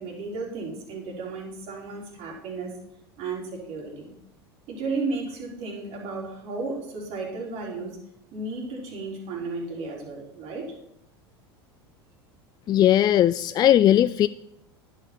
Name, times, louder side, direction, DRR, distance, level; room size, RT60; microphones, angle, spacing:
voice 1, 0.0-2.8 3.2-4.1 4.7-8.0 8.3-10.7, right 3 dB, 55° right, -1 dB, 4.1 m, -34 dB
voice 2, 12.7-14.3, left 11 dB, 30° left, 15 dB, 0.3 m, -18 dB
10.5 x 6.7 x 6.1 m, 0.79 s
hypercardioid pair, 85°, 13 cm